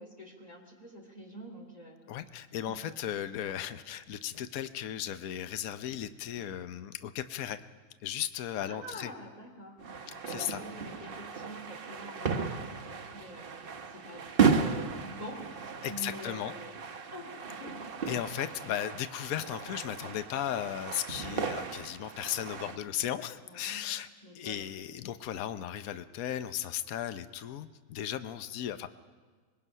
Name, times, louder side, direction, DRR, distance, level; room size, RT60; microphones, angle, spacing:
voice 1, 0.0-2.0 2.6-2.9 8.7-9.8 10.3-16.7 17.1-17.8 23.4-23.9 24.2-24.7, equal, 25° left, 1 dB, 3.0 m, -46 dB
voice 2, 2.1-7.6 8.0-9.1 10.3-10.6 15.8-16.5 18.1-24.1 24.3-28.9, left 11 dB, 70° left, 11 dB, 1.2 m, -36 dB
sound 1, 9.8-22.8, right 5 dB, 40° right, 1.0 m, -34 dB
25.5 x 20.5 x 5.5 m, 1.5 s
omnidirectional pair, 1.6 m